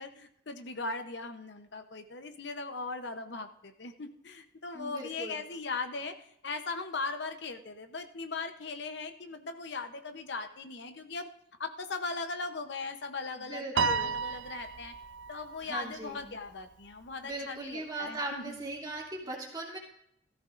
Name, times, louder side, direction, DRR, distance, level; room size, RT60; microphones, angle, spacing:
voice 1, 0.0-11.3 11.6-14.9 15.3-18.6, left 3 dB, 60° left, 7 dB, 0.8 m, -39 dB
voice 2, 4.7-5.4 13.4-14.1 15.6-16.3 17.2-19.8, right 2 dB, 20° right, -2 dB, 2.7 m, -39 dB
Piano, 13.8-16.3, right 5 dB, 65° right, 0.5 m, -33 dB
16.5 x 14.0 x 2.5 m, 0.74 s
head